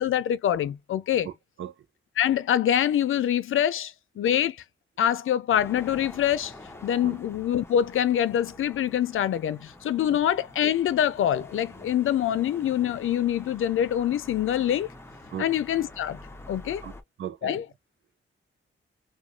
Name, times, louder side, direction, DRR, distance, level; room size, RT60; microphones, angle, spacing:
voice 1, 0.0-1.3 2.2-4.6 5.0-6.5 6.8-14.9 15.4-16.2 16.5-16.8 17.4-17.6, left 10 dB, 75° left, 0.5 m, -25 dB
voice 2, 1.2-1.7 7.0-7.2 10.1-10.2 15.3-15.5 16.8-16.9 17.2-17.6, right 9 dB, 65° right, 0.6 m, -37 dB
sound 1, 5.5-17.0, left 2 dB, 10° left, 0.6 m, -47 dB
3.1 x 2.3 x 2.3 m
wide cardioid pair, 150°, 21 cm